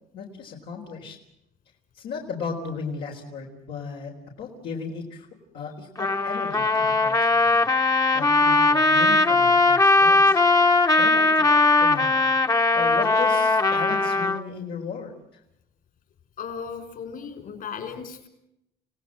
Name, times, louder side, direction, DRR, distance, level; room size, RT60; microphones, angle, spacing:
voice 1, 0.1-1.2 1.9-4.1 4.4-5.3 5.5-7.2 7.4-7.7 8.1-10.4 11.0-11.5 11.8-12.2 12.5-15.1, left 5 dB, 75° left, -1 dB, 4.5 m, -35 dB
Trumpet, 6.0-14.4, left 3 dB, 20° left, 1.4 m, -19 dB
voice 2, 16.4-18.3, left 6 dB, 55° left, 8 dB, 5.6 m, -36 dB
29.5 x 18.0 x 7.8 m, 0.82 s
cardioid pair, 110°, 17 cm